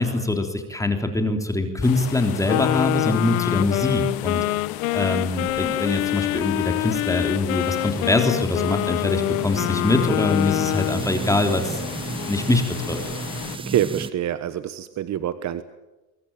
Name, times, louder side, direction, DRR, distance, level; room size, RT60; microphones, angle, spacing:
voice 1, 0.0-4.4 4.9-11.8 12.3-13.0, left 2 dB, 10° left, 5 dB, 3.6 m, -23 dB
sound 1, 1.8-13.6, left 16 dB, 60° left, 1.5 m, -36 dB
Wind instrument woodwind instrument, 2.5-11.1, left 17 dB, 80° left, 1.4 m, -25 dB
sound 2, 7.6-14.1, right 4 dB, 10° right, 1.0 m, -33 dB
voice 2, 13.7-15.6, right 11 dB, 40° right, 12 dB, 1.3 m, -26 dB
24.0 x 22.5 x 9.0 m, 1.1 s
supercardioid pair, 105°, 41 cm